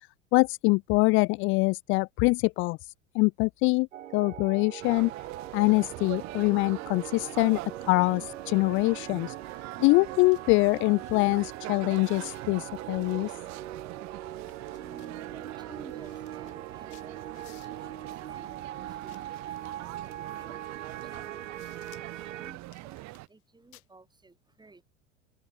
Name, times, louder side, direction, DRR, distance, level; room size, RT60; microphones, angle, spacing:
voice 1, 0.3-3.9 4.1-5.1 5.5-7.6 7.8-9.3 9.8-13.3, left 26 dB, 35° left, 0.4 m, -24 dB
sound 1, 3.9-22.5, right 11 dB, 80° right, 0.7 m, -41 dB
sound 2, 4.8-23.3, right 20 dB, 45° right, 4.1 m, -43 dB
sound 3, 9.9-10.0 10.3-10.4 11.0-11.3 11.6-12.4 13.1-14.0 14.4-15.1 15.6-15.7 15.9-17.9 18.9-19.9 20.6-20.8 21.1-22.2 22.6-23.4 23.7-23.9, left 39 dB, 55° left, 5.5 m, -59 dB
voice 2, 14.2-24.8, right 3 dB, 10° right, 7.7 m, -54 dB
figure-of-eight pair, 80°, 37 cm